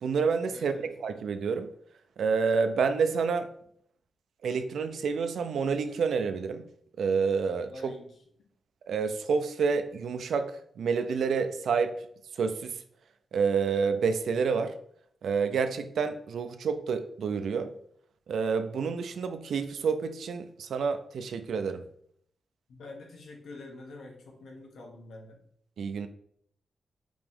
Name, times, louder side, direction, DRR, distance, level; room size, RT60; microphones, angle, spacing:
voice 1, 0.0-1.7 2.2-3.5 4.4-6.6 7.0-7.9 8.9-11.9 12.3-12.8 13.3-14.7 15.2-17.7 18.3-21.8 25.8-26.1, right 5 dB, 80° right, 9 dB, 0.4 m, -28 dB
voice 2, 0.5-0.9 7.7-8.1 22.7-25.4, left 2 dB, 85° left, 0 dB, 1.2 m, -46 dB
5.0 x 2.9 x 3.6 m, 0.66 s
wide cardioid pair, 140°, 0 cm